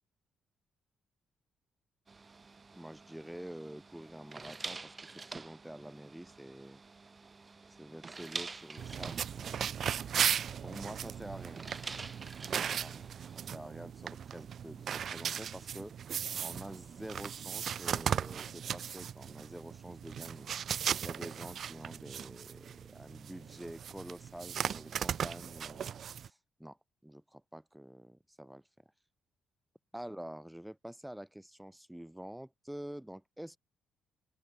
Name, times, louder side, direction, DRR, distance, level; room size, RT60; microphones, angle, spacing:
sound 1, 2.1-13.6, right 4 dB, 30° right, 1.4 m, -47 dB
voice 1, 2.7-6.8 7.7-10.2 10.6-11.6 12.5-15.9 16.4-20.5 21.0-28.6 29.9-33.6, right 1 dB, 5° right, 2.8 m, -47 dB
sound 2, 8.8-26.3, right 8 dB, 60° right, 0.9 m, -37 dB
open air
cardioid pair, 90°, 0 cm